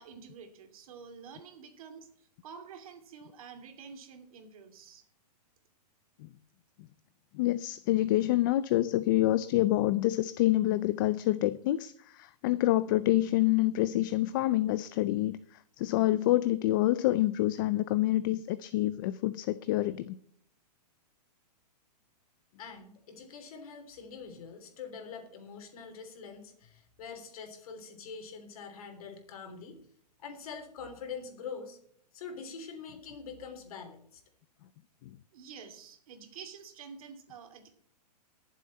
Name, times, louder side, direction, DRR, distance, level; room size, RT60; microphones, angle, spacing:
voice 1, 0.0-5.0 35.3-37.7, right 6 dB, 60° right, 2.6 m, -49 dB
voice 2, 7.3-20.1, left 15 dB, 30° left, 0.4 m, -27 dB
voice 3, 22.6-29.8 30.2-31.8 32.1-34.2, left 5 dB, 60° left, 3.4 m, -44 dB
20.5 x 7.5 x 4.2 m
hypercardioid pair, 150°, 21 cm